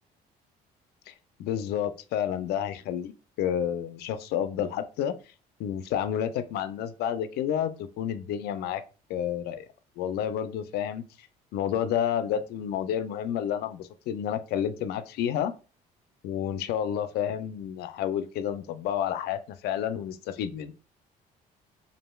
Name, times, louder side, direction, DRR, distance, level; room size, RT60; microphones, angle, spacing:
voice 1, 1.4-3.1 3.4-5.1 5.6-8.8 9.1-9.7 10.0-11.0 11.5-15.5 16.2-20.7, left 9 dB, 75° left, 0.4 m, -30 dB
3.0 x 2.6 x 2.2 m
cardioid pair, 110°, 17 cm